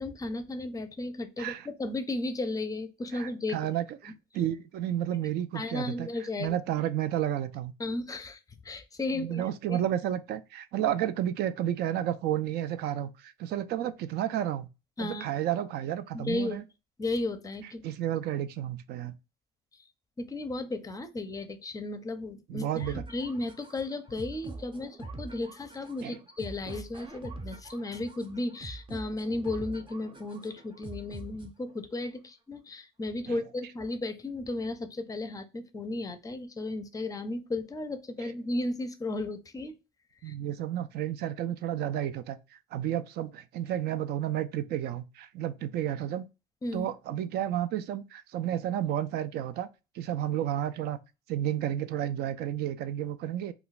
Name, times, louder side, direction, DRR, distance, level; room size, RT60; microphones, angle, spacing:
voice 1, 0.0-3.8 5.5-6.6 7.8-8.4 8.6-9.8 15.0-15.3 16.1-16.6 17.0-17.8 20.2-39.7 40.2-40.3 46.6-46.9, left 2 dB, 20° left, 0.5 m, -34 dB
voice 2, 3.1-6.1 6.4-7.7 9.1-14.7 15.0-16.6 17.8-19.1 22.5-23.0 26.0-26.2 33.3-33.4 38.2-38.3 40.2-42.4 42.7-46.2 46.7-49.7 50.0-51.0 51.3-53.5, right 11 dB, 70° right, 0.4 m, -31 dB
sound 1, 22.8-31.8, right 2 dB, 30° right, 0.7 m, -44 dB
2.3 x 2.3 x 3.9 m
cardioid pair, 110°, 17 cm